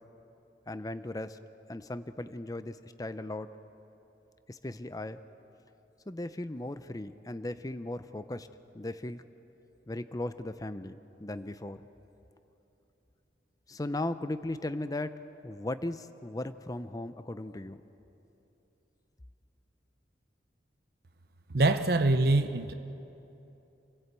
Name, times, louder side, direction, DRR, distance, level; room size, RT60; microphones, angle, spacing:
voice 1, 0.7-1.4 1.7-3.6 4.5-5.2 6.1-8.5 8.7-9.2 9.9-11.9 13.7-17.8, left 1 dB, 20° left, 0.5 m, -37 dB
voice 2, 21.5-22.7, right 2 dB, 55° right, 0.7 m, -24 dB
28.5 x 15.5 x 8.3 m
head